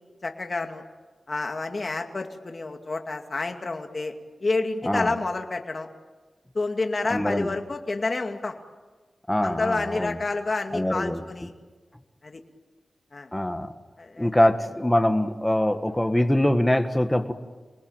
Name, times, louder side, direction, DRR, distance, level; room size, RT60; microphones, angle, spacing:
voice 1, 0.2-0.8 1.3-4.1 4.4-5.9 6.5-8.6 9.4-11.5 12.2-12.4 13.1-13.3 14.0-14.3, left 3 dB, 40° left, 4 dB, 2.5 m, -29 dB
voice 2, 7.1-7.6 9.3-10.2 10.7-11.2 13.3-13.7 14.2-17.3, left 1 dB, 10° left, 8 dB, 1.8 m, -23 dB
29.0 x 20.0 x 9.2 m, 1.3 s
wide cardioid pair, 95°, 0 cm